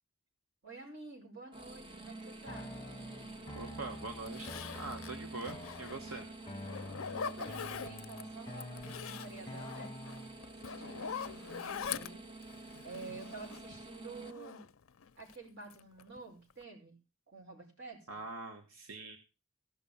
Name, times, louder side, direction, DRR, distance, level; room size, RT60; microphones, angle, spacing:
voice 1, 0.6-2.7 7.2-10.0 10.6-12.3 12.8-14.6 15.2-17.0 17.3-18.2, right 3 dB, 55° right, 1 dB, 5.3 m, -50 dB
sound 1, 1.5-14.3, right 2 dB, 25° right, 0.8 m, -48 dB
sound 2, 2.5-10.5, left 2 dB, 20° left, 1.0 m, -48 dB
voice 2, 3.5-6.3 11.4-11.6 18.1-19.2, right 3 dB, 80° right, 3 dB, 1.5 m, -44 dB
Zipper (clothing), 3.6-3.7 4.3-6.2 6.6-8.2 8.6-13.8 14.1-15.4 15.7-16.2 16.5-16.6, left 7 dB, 70° left, 0.5 m, -43 dB
15.5 x 6.2 x 7.0 m, 0.31 s
head